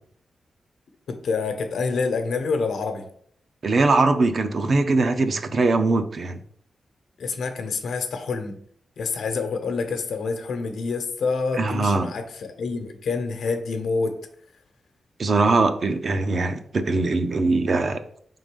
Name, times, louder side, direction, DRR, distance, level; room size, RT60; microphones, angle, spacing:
voice 1, 1.1-3.1 7.2-8.6 9.0-14.2, left 4 dB, 85° left, 6 dB, 0.9 m, -27 dB
voice 2, 3.6-6.4 11.6-12.1 15.2-18.0, right 3 dB, 45° right, 8 dB, 0.6 m, -21 dB
5.3 x 3.8 x 5.2 m, 0.62 s
wide cardioid pair, 155°, 0 cm